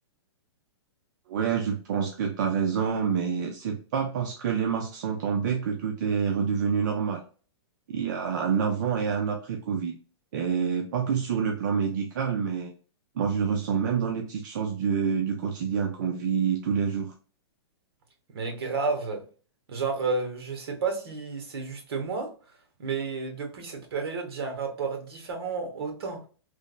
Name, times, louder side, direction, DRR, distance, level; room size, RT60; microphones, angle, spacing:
voice 1, 1.3-7.2 7.9-9.9 10.3-12.7 13.2-17.1, right 6 dB, 45° right, 0.4 m, -27 dB
voice 2, 18.3-19.2 19.7-22.3 22.8-26.2, right 4 dB, 60° right, 1.0 m, -31 dB
3.2 x 2.0 x 2.2 m
hypercardioid pair, 165°, 14 cm